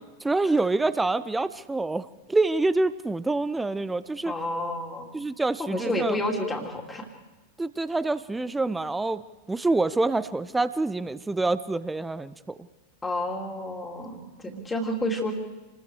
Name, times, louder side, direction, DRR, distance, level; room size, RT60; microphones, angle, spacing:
voice 1, 0.2-4.3 5.1-6.2 7.6-9.2 9.5-12.6, right 2 dB, 10° right, 16 dB, 0.7 m, -26 dB
voice 2, 4.2-5.1 5.6-7.1 13.0-15.3, left 1 dB, 10° left, 3 dB, 2.9 m, -30 dB
27.5 x 20.5 x 4.9 m, 1.1 s
figure-of-eight pair, 90°, 0 cm